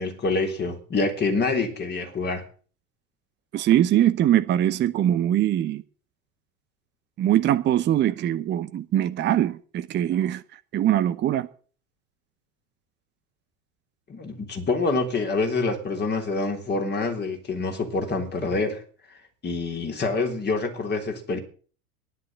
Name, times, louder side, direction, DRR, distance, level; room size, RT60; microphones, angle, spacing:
voice 1, 0.0-2.4 14.1-18.8 19.4-21.4, left 3 dB, 20° left, 3.6 m, -26 dB
voice 2, 3.5-5.8 7.2-11.5, right 12 dB, 25° right, 0.9 m, -22 dB
11.5 x 11.0 x 7.5 m
figure-of-eight pair, 80°, 44 cm